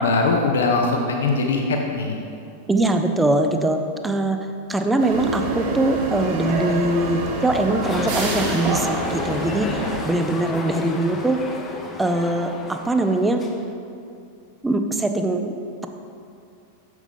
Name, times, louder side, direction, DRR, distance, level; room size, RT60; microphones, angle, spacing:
voice 1, 0.0-2.2, left 3 dB, 65° left, 2 dB, 0.8 m, -21 dB
voice 2, 2.7-4.4 4.7-11.4 12.0-13.4 14.6-15.9, right 2 dB, 10° right, 6 dB, 0.6 m, -22 dB
sound 1, 5.0-10.0, right 3 dB, 50° right, 1.4 m, -27 dB
sound 2, 7.8-13.7, left 2 dB, 20° left, 0.8 m, -31 dB
9.2 x 7.3 x 3.5 m, 2.5 s
figure-of-eight pair, 90°, 0 cm